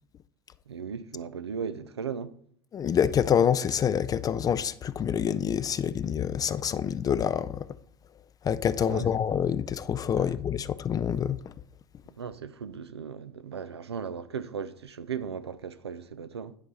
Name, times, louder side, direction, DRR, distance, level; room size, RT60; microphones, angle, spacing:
voice 1, 0.7-2.3 8.8-9.1 10.2-10.3 12.2-16.6, right 6 dB, 85° right, 0.5 m, -37 dB
voice 2, 2.7-7.7 8.4-11.4, left 8 dB, 25° left, 0.4 m, -26 dB
10.5 x 4.6 x 5.5 m
figure-of-eight pair, 75°, 13 cm